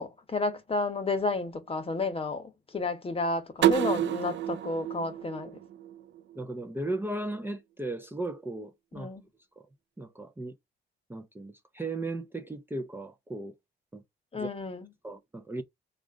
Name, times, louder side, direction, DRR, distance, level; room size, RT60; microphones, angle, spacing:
voice 1, 0.0-5.6 8.9-9.3 14.3-14.9, left 3 dB, 30° left, 1.1 m, -31 dB
sound 1, 3.6-6.4, right 11 dB, 65° right, 0.5 m, -29 dB
voice 2, 6.3-9.1 9.6-9.7 10.0-10.5 11.1-13.5 13.9-14.0 14.3-14.5 15.0-15.6, right 2 dB, 10° right, 0.7 m, -36 dB
3.7 x 2.5 x 4.6 m
cardioid pair, 90°, 20 cm